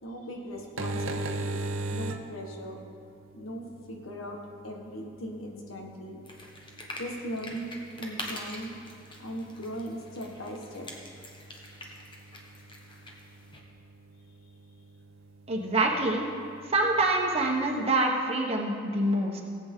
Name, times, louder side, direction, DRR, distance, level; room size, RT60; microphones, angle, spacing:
voice 1, 0.0-2.8 3.3-6.2 7.0-8.8 9.2-10.9, equal, 85° left, 1 dB, 1.5 m, -39 dB
sound 1, 0.6-17.9, right 2 dB, 80° right, 0.7 m, -42 dB
sound 2, 6.2-13.6, left 1 dB, 25° left, 1.2 m, -44 dB
voice 2, 15.5-16.2 16.7-19.4, right 2 dB, 30° right, -1 dB, 1.3 m, -26 dB
18.0 x 8.1 x 3.8 m, 2.4 s
head